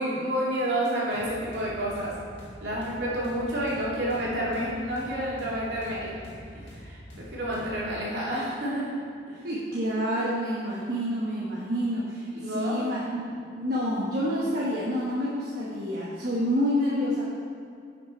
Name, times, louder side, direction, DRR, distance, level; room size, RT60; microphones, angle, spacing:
voice 1, 0.0-2.2 2.6-6.2 6.5-9.0 9.3-9.4 12.3-12.8, right 1 dB, 65° right, -6 dB, 2.4 m, -29 dB
sound 1, 1.1-7.8, equal, 70° left, 1.9 m, -45 dB
voice 2, 9.4-13.2 13.6-17.2, equal, 50° right, -7 dB, 1.1 m, -28 dB
10.0 x 5.9 x 4.3 m, 2.3 s
head